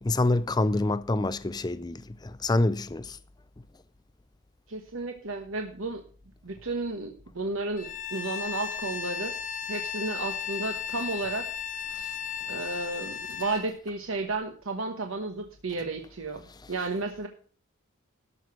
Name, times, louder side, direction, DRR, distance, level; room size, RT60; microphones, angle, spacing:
voice 1, 0.0-3.2, left 2 dB, 20° left, 0.4 m, -26 dB
voice 2, 4.7-6.0 6.4-9.3 9.7-11.4 12.5-16.4 16.7-17.3, right 3 dB, 65° right, 1.2 m, -33 dB
Bowed string instrument, 7.8-13.7, left 8 dB, 35° left, 1.1 m, -35 dB
12.5 x 6.1 x 6.2 m
head